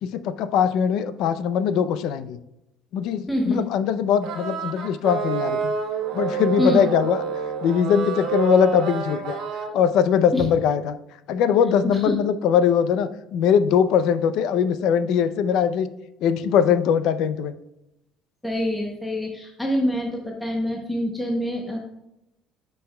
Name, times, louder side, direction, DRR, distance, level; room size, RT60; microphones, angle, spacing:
voice 1, 0.0-2.4 2.9-5.7 6.1-7.2 7.6-9.4 9.7-11.0 11.3-15.9 16.2-17.5, left 8 dB, 60° left, 12 dB, 0.5 m, -21 dB
voice 2, 3.3-3.6 6.6-6.9 10.3-10.4 11.8-12.1 18.4-21.8, equal, 5° left, -1 dB, 0.8 m, -25 dB
sound 1, 4.2-9.7, right 5 dB, 55° right, 1.2 m, -28 dB
10.0 x 5.5 x 2.2 m, 0.87 s
cardioid pair, 165°, 0 cm